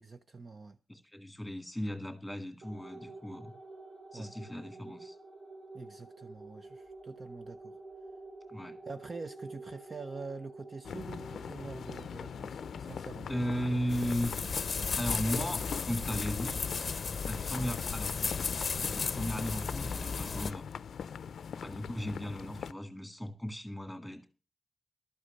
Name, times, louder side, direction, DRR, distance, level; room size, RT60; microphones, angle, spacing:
voice 1, 0.0-0.8 4.1-4.4 5.7-7.8 8.8-13.3, right 4 dB, 30° right, 0.5 m, -45 dB
voice 2, 0.9-3.5 4.1-5.2 8.5-8.7 13.3-14.3 15.0-16.6 17.3-18.2 18.9-20.7 21.6-24.3, equal, ahead, 1.9 m, -36 dB
sound 1, 2.6-17.4, right 2 dB, 90° right, 3.7 m, -51 dB
sound 2, 10.8-22.7, left 7 dB, 85° left, 0.5 m, -42 dB
sound 3, 13.9-20.5, left 5 dB, 40° left, 0.7 m, -35 dB
12.5 x 8.1 x 6.6 m
wide cardioid pair, 175°, 0 cm